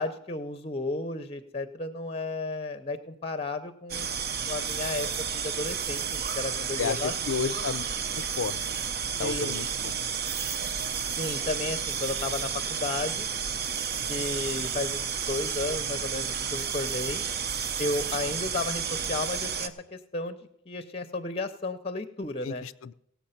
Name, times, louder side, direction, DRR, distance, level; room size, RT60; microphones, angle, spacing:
voice 1, 0.0-4.1 4.5-5.1 5.3-6.0 6.3-7.5 9.2-9.6 11.2-13.3 14.1-17.2 17.8-20.4 20.7-22.7, left 2 dB, 30° left, 12 dB, 0.6 m, -33 dB
sound 1, 3.9-19.7, right 7 dB, 50° right, 0.7 m, -31 dB
voice 2, 6.8-7.8 8.1-8.6 9.2-9.9 17.9-18.0 22.4-22.9, left 6 dB, 75° left, 19 dB, 0.4 m, -32 dB
17.5 x 7.1 x 5.7 m, 0.76 s
head